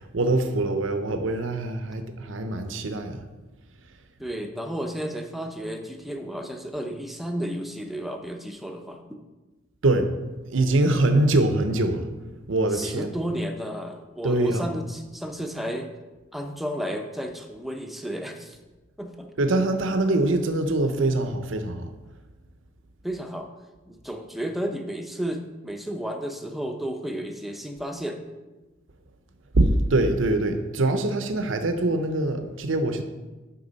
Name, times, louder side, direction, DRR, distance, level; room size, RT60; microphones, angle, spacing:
voice 1, 0.0-3.2 9.8-10.1 10.4-12.1 12.5-13.2 14.2-14.7 19.4-21.9 29.5-33.0, right 2 dB, 90° right, 8 dB, 0.8 m, -23 dB
voice 2, 4.2-9.0 12.7-15.9 16.3-18.6 19.0-19.3 23.0-23.5 23.9-28.2, equal, ahead, 4 dB, 0.7 m, -32 dB
8.5 x 5.9 x 4.1 m, 1.2 s
head